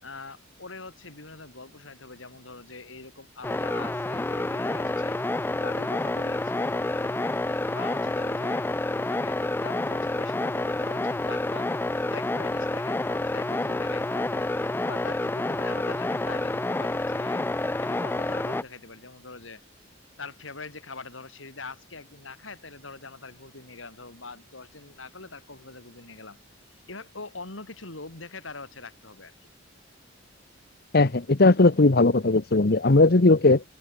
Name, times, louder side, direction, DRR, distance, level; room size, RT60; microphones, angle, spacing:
voice 1, 0.0-5.2 5.6-7.3 7.7-8.7 9.1-11.7 12.1-17.5 17.8-19.6 20.2-26.4 26.7-29.3, left 3 dB, 80° left, 4.0 m, -43 dB
sound 1, 3.4-18.6, left 2 dB, 10° left, 0.3 m, -28 dB
voice 2, 30.9-33.6, left 2 dB, 55° left, 1.0 m, -18 dB
head